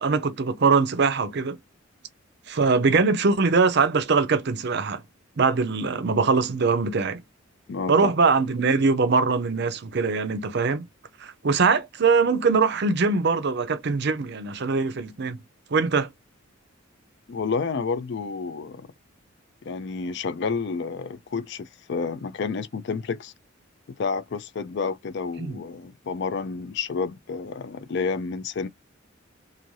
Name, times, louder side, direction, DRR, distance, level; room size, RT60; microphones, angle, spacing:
voice 1, 0.0-1.6 2.5-5.0 5.4-7.2 7.9-10.9 11.2-15.4 15.7-16.1 25.4-25.6, right 4 dB, 55° right, 0.5 m, -22 dB
voice 2, 7.7-8.1 17.3-18.9 19.6-23.3 24.0-28.7, left 5 dB, 55° left, 0.4 m, -30 dB
3.1 x 2.6 x 2.6 m
head